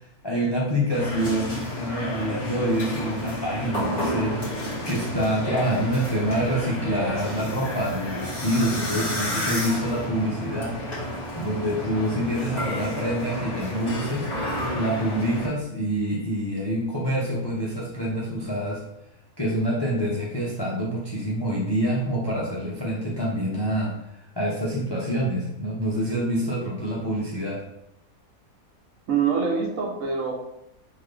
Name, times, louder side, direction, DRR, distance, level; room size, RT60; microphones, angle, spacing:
voice 1, 0.2-4.4 4.9-10.8 11.4-14.3 14.7-18.8 19.4-23.9 24.4-27.6, equal, 40° left, -5 dB, 0.3 m, -26 dB
sound 1, 0.9-15.5, equal, 20° left, 1.3 m, -31 dB
voice 2, 29.1-30.3, right 6 dB, 70° right, 0 dB, 1.1 m, -24 dB
3.9 x 2.7 x 3.2 m, 0.84 s
omnidirectional pair, 1.5 m